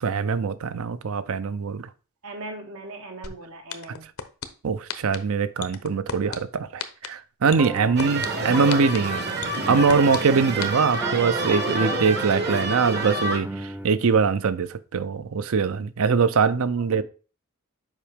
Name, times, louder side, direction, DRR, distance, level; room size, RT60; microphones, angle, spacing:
voice 1, 0.0-1.9 4.6-9.3 9.7-13.5 13.8-17.0, right 5 dB, 70° right, 0.5 m, -22 dB
voice 2, 2.2-4.1 7.8-8.2 16.9-17.0, right 2 dB, 85° right, 1.6 m, -39 dB
sound 1, 3.2-3.3 3.7-4.4 4.9-5.2 5.6-6.4 6.8-7.1 7.5-8.3 8.7-9.0 9.4-10.2 10.6-10.7, left 8 dB, 70° left, 0.7 m, -31 dB
sound 2, 7.5-13.9, right 1 dB, 10° right, 0.5 m, -36 dB
sound 3, 8.0-13.4, right 2 dB, 50° right, 1.0 m, -28 dB
7.2 x 4.9 x 3.5 m
head